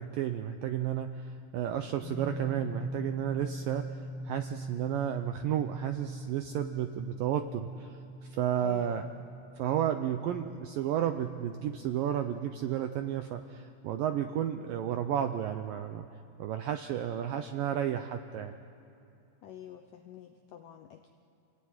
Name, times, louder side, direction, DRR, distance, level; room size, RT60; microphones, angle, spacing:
voice 1, 0.0-8.0 8.3-9.1 9.6-16.1 16.4-18.5, right 10 dB, 80° right, 7 dB, 2.0 m, -32 dB
sound 1, 2.0-14.9, right 1 dB, 50° right, 3.8 m, -43 dB
voice 2, 8.6-9.1 19.4-21.1, left 10 dB, 80° left, 6 dB, 1.9 m, -47 dB
27.5 x 20.0 x 9.5 m, 2.7 s
omnidirectional pair, 5.0 m